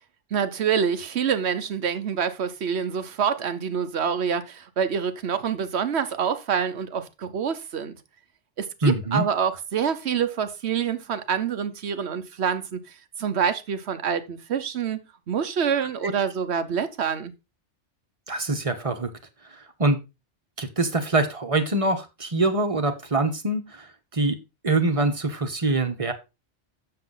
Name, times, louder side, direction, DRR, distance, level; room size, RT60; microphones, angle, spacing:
voice 1, 0.3-8.0 8.6-12.8 13.2-15.0 15.3-17.3, right 7 dB, 65° right, 1.2 m, -26 dB
voice 2, 8.8-9.2 16.0-16.1 18.3-19.1 19.5-20.0 20.6-23.9 24.1-24.4 24.6-26.1, right 2 dB, 30° right, 1.1 m, -24 dB
7.8 x 6.9 x 3.9 m
omnidirectional pair, 1.2 m